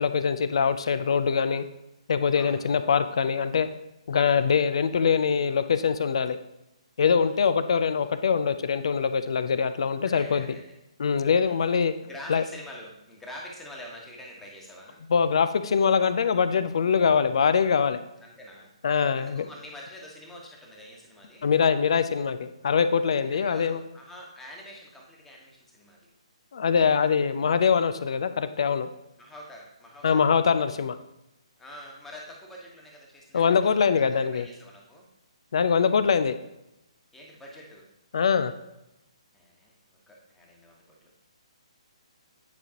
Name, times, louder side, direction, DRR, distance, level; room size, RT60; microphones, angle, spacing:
voice 1, 0.0-1.6 2.1-3.7 4.1-6.4 7.0-10.5 11.0-11.9 12.3-12.4 15.1-18.0 18.8-19.4 21.4-23.8 26.5-28.9 30.0-31.0 33.3-34.5 35.5-36.4 38.1-38.5, left 6 dB, 55° left, 11 dB, 0.5 m, -23 dB
voice 2, 2.3-2.6 4.2-4.4 7.2-7.4 10.0-10.8 11.4-11.6 12.0-15.0 18.2-18.7 19.1-21.5 23.2-26.0 26.7-27.0 29.2-30.2 31.6-33.8 34.1-35.0 37.1-37.8 39.3-39.7 40.1-41.1, left 1 dB, 5° left, -2 dB, 1.4 m, -46 dB
9.4 x 5.1 x 2.9 m, 0.91 s
figure-of-eight pair, 135°, 3 cm